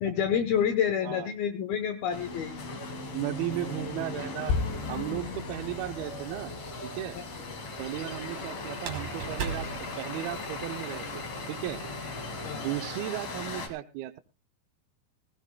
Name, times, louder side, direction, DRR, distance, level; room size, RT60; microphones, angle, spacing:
voice 1, 0.0-2.5 7.1-7.2 12.4-12.7, left 8 dB, 75° left, 7 dB, 2.4 m, -28 dB
voice 2, 1.0-1.3 3.1-4.5 4.9-6.5 6.8-7.2 7.8-11.8 12.5-14.2, right 14 dB, 75° right, 8 dB, 2.4 m, -35 dB
sound 1, 2.1-13.7, left 2 dB, 45° left, 2.6 m, -38 dB
sound 2, 4.5-8.9, left 4 dB, 90° left, 5.4 m, -36 dB
sound 3, 5.6-6.3 8.7-10.7, right 6 dB, 55° right, 3.4 m, -38 dB
19.5 x 16.5 x 2.2 m, 0.28 s
omnidirectional pair, 5.2 m